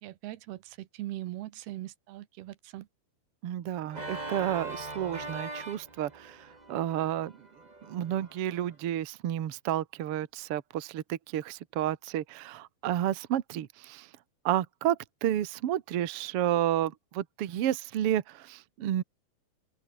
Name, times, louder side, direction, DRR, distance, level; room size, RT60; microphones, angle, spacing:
voice 1, 0.0-2.9, right 15 dB, 85° right, 3.1 m, -40 dB
voice 2, 3.4-7.5 7.8-14.1 14.4-19.0, right 11 dB, 60° right, 1.5 m, -31 dB
Organ, 3.9-8.7, right 2 dB, 15° right, 2.2 m, -41 dB
open air
omnidirectional pair, 4.4 m